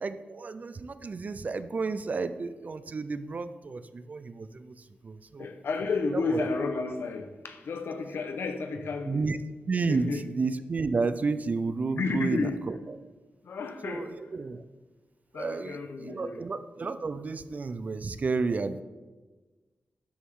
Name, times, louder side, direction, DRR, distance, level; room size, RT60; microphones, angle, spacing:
voice 1, 0.0-4.7 5.0-5.5 6.1-6.5 9.1-9.4 9.7-12.8 13.8-14.6 15.3-18.8, right 4 dB, 40° right, 12 dB, 0.6 m, -31 dB
voice 2, 5.4-9.3 9.9-10.2 11.9-12.6 13.4-14.3 15.3-16.4, left 4 dB, 80° left, 7 dB, 1.1 m, -32 dB
13.0 x 8.7 x 3.8 m, 1.3 s
wide cardioid pair, 120°, 4 cm